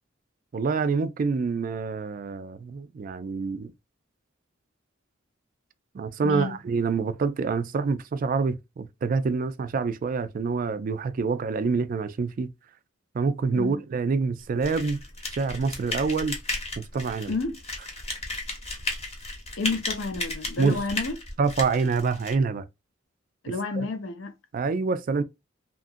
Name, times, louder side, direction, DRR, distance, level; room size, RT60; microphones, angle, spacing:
voice 1, 0.5-3.7 5.9-12.5 13.1-15.0 15.3-16.4 16.9-17.3 20.6-20.8 21.4-22.6 23.8-23.9 24.5-25.2, right 4 dB, 45° right, 0.3 m, -26 dB
sound 1, 14.6-22.3, left 2 dB, 30° left, 0.9 m, -34 dB
voice 2, 17.3-17.6 19.6-21.2 23.4-24.3, left 3 dB, 70° left, 0.6 m, -30 dB
2.9 x 2.4 x 2.5 m
head